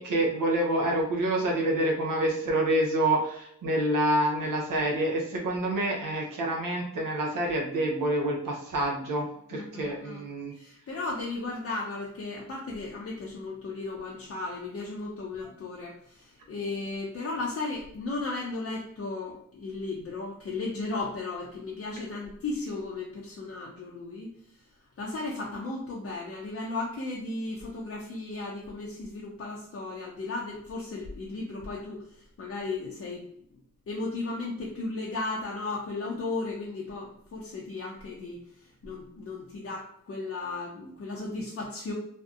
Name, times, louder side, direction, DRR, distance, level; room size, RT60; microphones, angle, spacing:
voice 1, 0.0-10.5, right 1 dB, 80° right, 0 dB, 0.6 m, -27 dB
voice 2, 9.5-10.2 10.5-24.3 25.0-33.2 33.9-41.9, left 3 dB, 45° left, -3 dB, 0.5 m, -35 dB
2.6 x 2.0 x 2.3 m, 0.68 s
cardioid pair, 70°, 32 cm